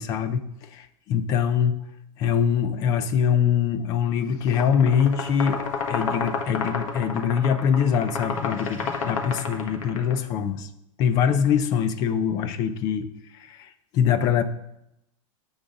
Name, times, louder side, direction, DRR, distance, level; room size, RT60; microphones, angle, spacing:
voice 1, 0.0-1.8 2.2-5.6 5.9-10.7 11.0-13.1 13.3-14.4, left 7 dB, 20° left, 11 dB, 0.4 m, -23 dB
sound 1, 4.4-10.1, left 5 dB, 80° left, 1.4 m, -30 dB
9.8 x 4.0 x 6.9 m, 0.84 s
supercardioid pair, 175°, 17 cm